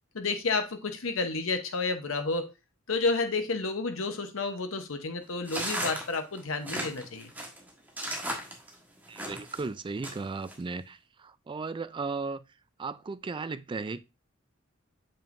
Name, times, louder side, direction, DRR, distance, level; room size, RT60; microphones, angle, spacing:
voice 1, 0.1-2.5 2.9-7.3, left 3 dB, 75° left, 0.9 m, -30 dB
sound 1, 5.4-9.6 10.0-10.5, right 1 dB, 10° right, 1.4 m, -35 dB
voice 2, 9.1-12.4 12.8-14.0, right 4 dB, 25° right, 0.3 m, -36 dB
7.1 x 5.5 x 2.6 m
head